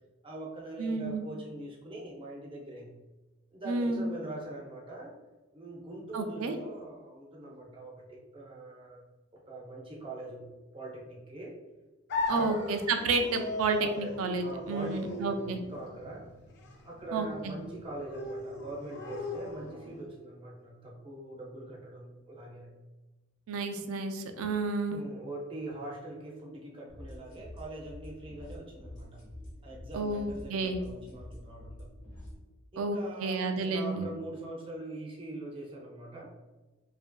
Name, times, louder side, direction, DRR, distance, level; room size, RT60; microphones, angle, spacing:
voice 1, 0.2-2.9 3.5-5.1 5.5-9.0 9.3-11.6 12.3-12.7 13.8-16.3 16.8-22.8 24.9-29.2 29.6-31.9 32.7-36.3, right 2 dB, 25° right, -2 dB, 0.5 m, -43 dB
voice 2, 0.8-1.3 3.7-4.1 6.1-6.6 12.3-15.6 17.1-17.5 23.5-25.0 29.9-30.8 32.8-34.1, right 3 dB, 85° right, 7 dB, 0.3 m, -31 dB
sound 1, 12.1-20.1, left 2 dB, 55° left, 0.4 m, -39 dB
sound 2, 26.9-32.4, left 1 dB, 35° left, 0.9 m, -47 dB
2.8 x 2.5 x 2.2 m, 1.1 s
head